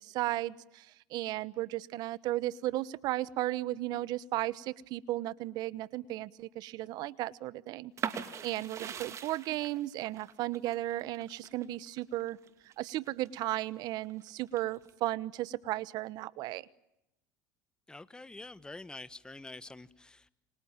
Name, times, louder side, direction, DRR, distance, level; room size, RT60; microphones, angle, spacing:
voice 1, 0.0-12.4 12.8-16.7, right 16 dB, 60° right, 18 dB, 1.1 m, -35 dB
sound 1, 8.0-13.6 14.0-14.9, right 8 dB, 40° right, 2.7 m, -41 dB
voice 2, 17.9-20.3, left 2 dB, 10° left, 15 dB, 1.3 m, -47 dB
28.5 x 25.5 x 7.4 m, 0.87 s
supercardioid pair, 105°, 8 cm